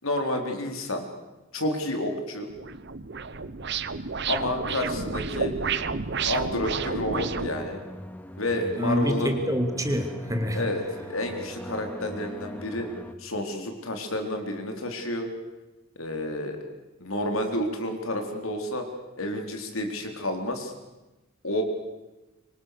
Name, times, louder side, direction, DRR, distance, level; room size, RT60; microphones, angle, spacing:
voice 1, 0.0-1.1 1.5-2.5 4.3-5.6 6.3-7.8 8.4-9.4 10.5-10.8 11.1-12.9 13.2-15.3 16.0-16.6 17.0-18.9 19.2-20.7 21.4-21.6, left 1 dB, 80° left, 4 dB, 4.2 m, -30 dB
sound 1, 2.5-7.5, right 5 dB, 55° right, 1.1 m, -31 dB
sound 2, 6.7-13.1, left 1 dB, 10° left, 1.4 m, -41 dB
voice 2, 8.6-10.6, equal, 15° right, 5 dB, 2.6 m, -27 dB
26.5 x 24.5 x 6.9 m, 1.1 s
head